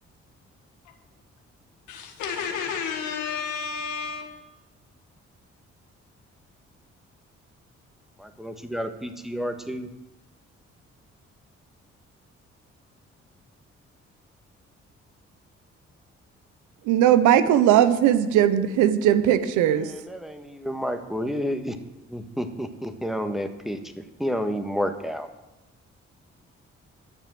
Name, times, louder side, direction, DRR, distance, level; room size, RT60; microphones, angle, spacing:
voice 1, 1.9-4.5, left 6 dB, 90° left, 4 dB, 1.7 m, -31 dB
voice 2, 8.2-9.9 19.8-21.8 22.1-25.3, equal, ahead, 7 dB, 1.6 m, -30 dB
voice 3, 16.9-19.9, right 10 dB, 90° right, 12 dB, 0.8 m, -19 dB
11.5 x 7.0 x 7.6 m, 1.0 s
supercardioid pair, 55°, 29 cm